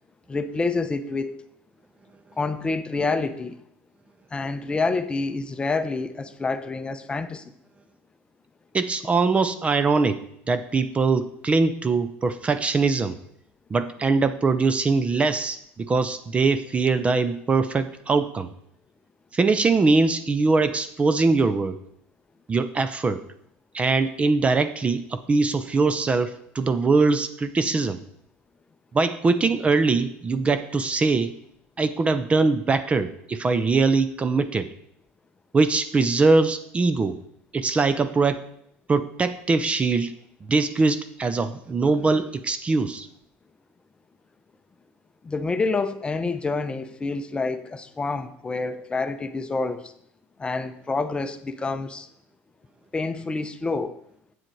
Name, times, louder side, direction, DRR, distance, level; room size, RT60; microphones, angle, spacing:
voice 1, 0.3-1.4 2.4-3.6 4.3-7.4 45.2-49.9 50.4-52.1 52.9-54.0, left 3 dB, 20° left, 10 dB, 0.7 m, -27 dB
voice 2, 8.7-13.2 13.7-18.5 19.3-21.8 22.5-23.2 23.7-28.0 28.9-31.3 31.8-34.7 35.5-37.2 37.5-38.4 38.9-40.1 40.5-43.1, right 4 dB, 25° right, 11 dB, 0.6 m, -22 dB
8.0 x 7.3 x 4.6 m, 0.71 s
supercardioid pair, 110°, 5 cm